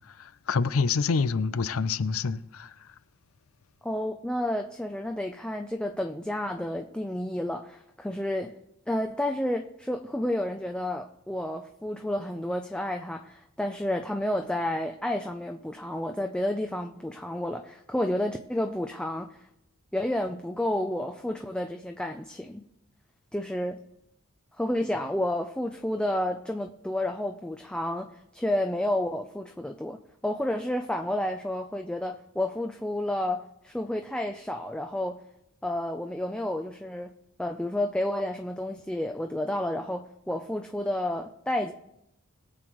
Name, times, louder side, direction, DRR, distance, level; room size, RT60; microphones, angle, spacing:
voice 1, 0.2-2.7, left 4 dB, 80° left, 0.5 m, -27 dB
voice 2, 3.8-8.5 8.9-19.3 19.9-22.6 23.3-23.8 24.6-35.2 35.6-37.1 37.4-41.7, left 1 dB, 5° left, 0.4 m, -30 dB
21.5 x 7.8 x 3.1 m
head